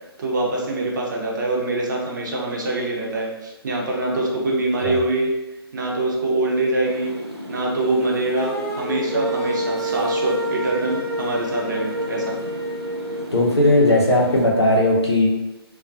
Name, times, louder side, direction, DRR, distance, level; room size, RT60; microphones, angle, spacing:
voice 1, 0.2-5.3 5.7-7.2 7.5-12.4, right 2 dB, 45° right, -2 dB, 0.6 m, -24 dB
sound 1, 6.8-14.4, left 1 dB, 80° right, 0.8 m, -35 dB
sound 2, 8.3-13.2, equal, 25° left, 0.9 m, -28 dB
voice 2, 13.3-15.3, left 1 dB, 80° left, -2 dB, 0.7 m, -17 dB
2.3 x 2.1 x 2.5 m, 1.0 s
figure-of-eight pair, 135°, 14 cm